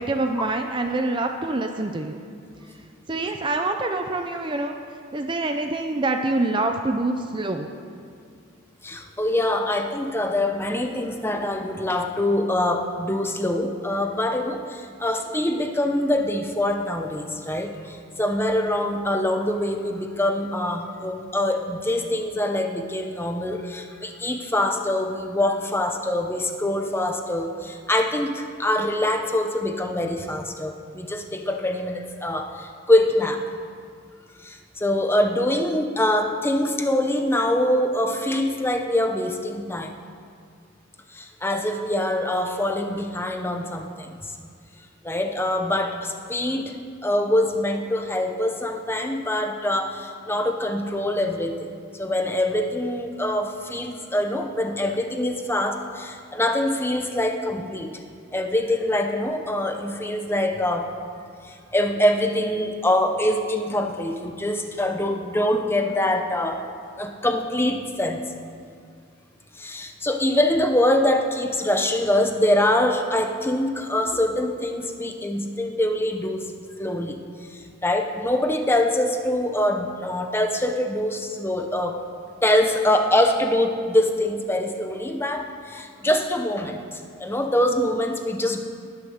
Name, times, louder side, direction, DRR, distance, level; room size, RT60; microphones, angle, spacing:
voice 1, 0.0-2.2 3.1-4.8 5.1-7.7, right 2 dB, 25° right, 5 dB, 0.5 m, -25 dB
voice 2, 8.8-33.4 34.4-39.9 41.1-44.4 45.0-46.8 47.0-51.7 51.9-58.0 58.3-61.0 61.4-66.7 67.0-68.2 69.5-76.5 76.8-77.2 77.5-82.0 82.4-88.7, left 1 dB, 10° left, 5 dB, 0.8 m, -24 dB
19.5 x 6.8 x 6.5 m, 2.2 s
head